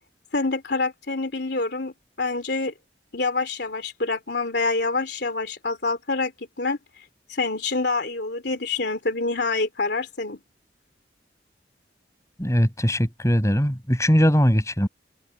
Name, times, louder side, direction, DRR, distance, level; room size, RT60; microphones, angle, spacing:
voice 1, 0.3-2.7 3.1-7.0 7.3-10.4, left 3 dB, 65° left, 3.2 m, -26 dB
voice 2, 12.4-14.9, equal, 15° left, 7.8 m, -20 dB
head